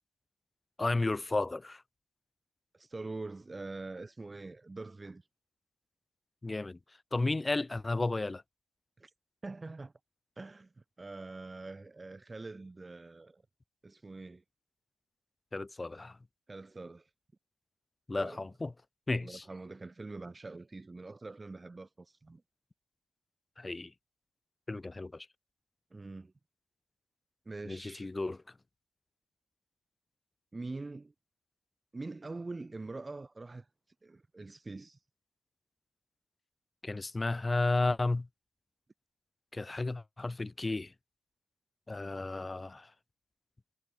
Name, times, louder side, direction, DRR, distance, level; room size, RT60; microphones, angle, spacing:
voice 1, 0.8-1.8 6.4-6.8 7.1-8.4 15.5-16.2 18.1-18.7 19.1-19.4 23.6-23.9 24.7-25.3 27.7-28.4 36.8-38.3 39.5-40.9 41.9-42.9, left 2 dB, 20° left, 0.4 m, -33 dB
voice 2, 2.7-5.2 9.0-9.1 9.4-9.9 10.4-13.4 13.8-14.4 16.5-17.1 18.2-18.5 19.2-22.4 25.9-26.3 27.4-28.1 30.5-31.1 31.9-33.7 34.0-35.0, right 3 dB, 20° right, 1.3 m, -44 dB
cardioid pair, 90°, 0 cm